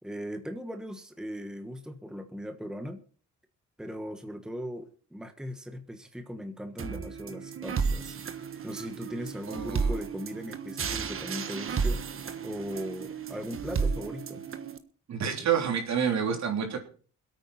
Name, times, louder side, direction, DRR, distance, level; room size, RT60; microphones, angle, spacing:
voice 1, 0.0-3.0 3.8-12.1 12.4-14.4, equal, ahead, 7 dB, 1.4 m, -39 dB
sound 1, 6.8-14.8, right 5 dB, 45° right, 1.4 m, -33 dB
voice 2, 9.5-9.9 15.1-16.8, right 7 dB, 65° right, 3 dB, 3.5 m, -28 dB
22.0 x 8.9 x 4.3 m, 0.41 s
cardioid pair, 90°, 30 cm